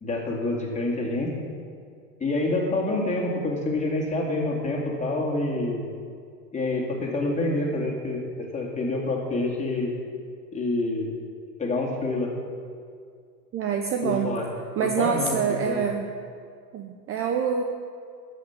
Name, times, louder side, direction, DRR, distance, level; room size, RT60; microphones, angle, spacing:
voice 1, 0.0-1.3 2.2-5.9 6.5-8.2 8.5-9.9 10.5-11.1 11.6-12.3 14.0-14.5 14.8-15.9, left 2 dB, 15° left, -2 dB, 2.4 m, -27 dB
voice 2, 13.5-14.3 14.8-16.1 16.7-17.6, right 7 dB, 25° right, 4 dB, 0.7 m, -26 dB
13.0 x 5.7 x 8.1 m, 2.2 s
hypercardioid pair, 120°, 49 cm